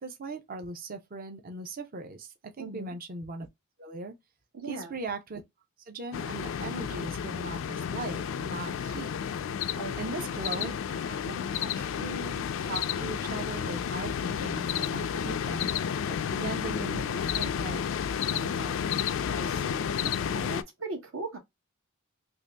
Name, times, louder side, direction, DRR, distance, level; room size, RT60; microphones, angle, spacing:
voice 1, 0.0-3.5 3.8-4.1 4.7-5.4 5.9-9.1 10.0-10.7 11.0-15.7 16.1-17.0 17.4-17.8 18.3-18.8, right 3 dB, 45° right, 0.5 m, -39 dB
voice 2, 2.6-2.9 4.5-4.9 9.8-9.9 16.9-17.3 19.3-21.4, right 2 dB, 75° right, 1.1 m, -39 dB
sound 1, 6.1-20.6, left 8 dB, 65° left, 0.3 m, -31 dB
2.9 x 2.7 x 3.3 m
head